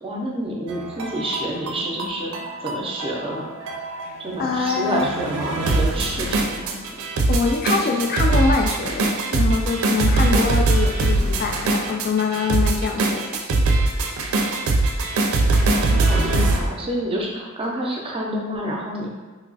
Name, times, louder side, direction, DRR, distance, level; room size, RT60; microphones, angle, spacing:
voice 1, 0.0-2.3 2.6-3.5 4.2-7.0 15.6-19.1, right 1 dB, 25° right, -2 dB, 0.6 m, -28 dB
sound 1, 0.7-16.6, right 2 dB, 70° right, 0.4 m, -22 dB
voice 2, 4.0-5.1 7.3-13.4, left 4 dB, 45° left, 2 dB, 0.3 m, -24 dB
3.0 x 2.3 x 3.9 m, 1.4 s
head